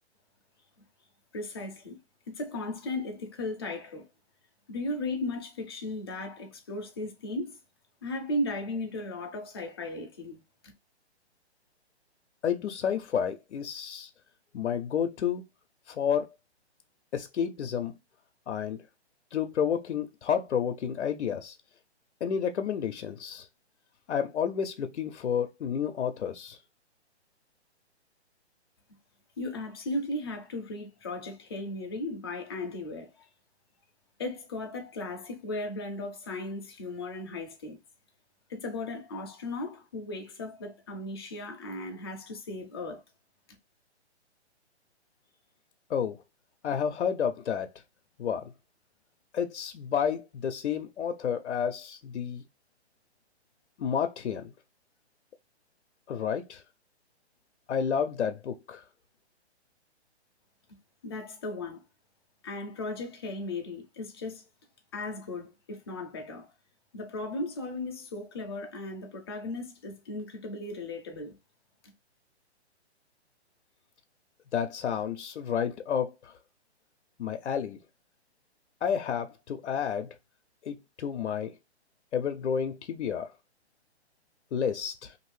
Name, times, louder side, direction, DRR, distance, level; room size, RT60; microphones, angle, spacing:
voice 1, 1.3-2.0 2.3-4.1 4.7-7.6 8.0-10.4 29.4-33.3 34.2-37.8 38.5-43.0 61.0-61.8 62.4-64.4 64.9-66.5 66.9-71.4, left 2 dB, 25° left, 0.5 m, -36 dB
voice 2, 12.4-14.1 14.5-15.4 15.9-16.3 17.1-17.9 18.5-18.8 19.3-21.6 22.2-23.5 24.1-26.6 45.9-46.2 46.6-47.7 48.2-48.5 49.3-52.4 53.8-54.5 56.1-56.6 57.7-58.8 74.5-76.3 77.2-77.8 78.8-80.1 80.6-81.5 82.1-83.3 84.5-85.1, left 8 dB, 90° left, 0.6 m, -30 dB
2.6 x 2.6 x 3.1 m
hypercardioid pair, 155°, 34 cm